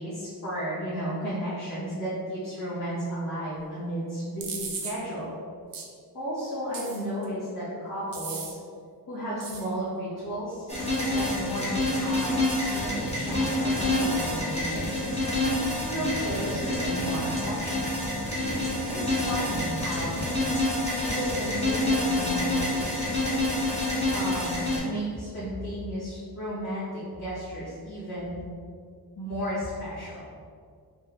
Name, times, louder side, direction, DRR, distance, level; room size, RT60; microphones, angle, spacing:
voice 1, 0.0-5.3 6.1-8.6 9.1-10.7 11.1-14.8 15.9-17.9 18.8-20.2 21.1-22.9 24.1-28.4 29.1-30.3, equal, 55° left, -12 dB, 1.2 m, -33 dB
sound 1, 4.4-4.9 5.7-5.9 6.7-7.3 8.1-8.5 9.4-9.7, right 5 dB, 60° right, 0.6 m, -36 dB
sound 2, 10.7-24.8, left 1 dB, 15° left, 1.0 m, -27 dB
sound 3, 12.7-20.6, right 1 dB, 35° right, 0.9 m, -38 dB
3.2 x 2.6 x 3.2 m, 2.1 s
wide cardioid pair, 130°, 39 cm